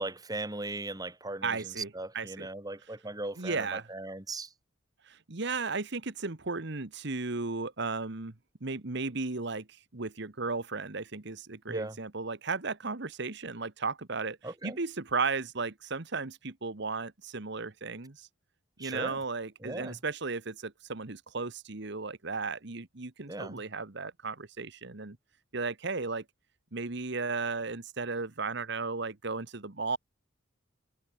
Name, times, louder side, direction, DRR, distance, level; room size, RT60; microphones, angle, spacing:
voice 1, 0.0-4.5 11.7-12.0 14.4-14.8 18.8-19.2 19.6-20.0 23.3-23.6, right 2 dB, 20° right, 2.5 m, -38 dB
voice 2, 1.4-2.5 3.4-3.9 5.0-8.3 8.6-14.4 14.6-18.3 18.8-25.2 25.5-26.2 26.7-30.0, right 4 dB, 60° right, 1.4 m, -35 dB
head